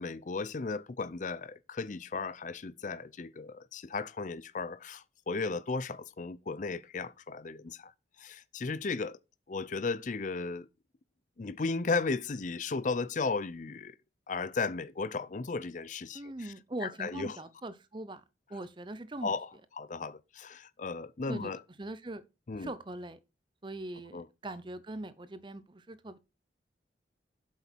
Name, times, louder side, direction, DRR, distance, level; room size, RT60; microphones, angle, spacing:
voice 1, 0.0-7.9 8.2-9.2 9.5-10.7 11.4-14.0 14.3-16.5 16.8-17.4 19.2-19.5 19.8-21.6 22.5-22.7 24.1-24.3, left 4 dB, 45° left, 0.5 m, -35 dB
voice 2, 16.1-18.2 18.5-19.3 21.3-21.5 21.8-22.2 22.6-23.2 23.6-26.2, right 1 dB, 25° right, 0.7 m, -41 dB
7.9 x 6.9 x 4.5 m
head